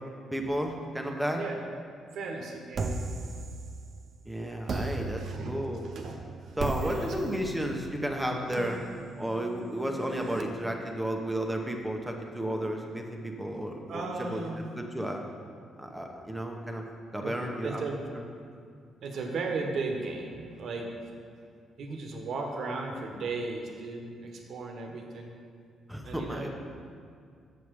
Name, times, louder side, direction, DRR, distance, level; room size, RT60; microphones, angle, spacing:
voice 1, 0.3-1.4 4.2-5.9 6.6-8.8 9.2-15.2 15.8-16.9 17.1-17.9 18.1-18.2 25.9-26.5, equal, 5° right, 2 dB, 0.9 m, -33 dB
voice 2, 2.1-3.0 5.2-5.6 5.8-6.2 6.4-7.1 13.9-14.7 17.2-17.3 17.6-18.0 19.0-20.9 21.8-25.3 26.0-26.5, right 3 dB, 65° right, 2 dB, 1.2 m, -36 dB
sound 1, 2.7-4.1 4.7-10.4, right 3 dB, 50° right, 0.7 m, -37 dB
7.1 x 6.9 x 4.8 m, 2.3 s
cardioid pair, 90°, 0 cm